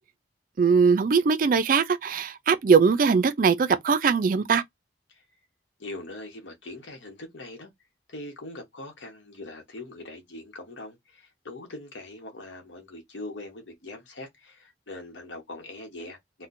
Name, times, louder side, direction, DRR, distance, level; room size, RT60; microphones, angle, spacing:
voice 1, 0.6-4.6, right 5 dB, 50° right, 0.4 m, -21 dB
voice 2, 5.8-7.7 8.1-16.5, left 2 dB, 85° left, 1.0 m, -42 dB
4.2 x 2.2 x 2.5 m
head